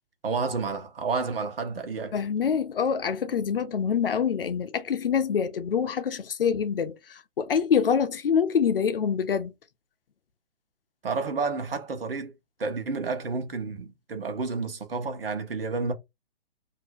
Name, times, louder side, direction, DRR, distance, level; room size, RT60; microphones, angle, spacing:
voice 1, 0.2-2.2 11.0-12.3 12.6-15.9, right 4 dB, 65° right, 1.0 m, -30 dB
voice 2, 2.1-9.5, left 7 dB, 60° left, 0.6 m, -25 dB
2.6 x 2.0 x 3.5 m
figure-of-eight pair, 120°, 31 cm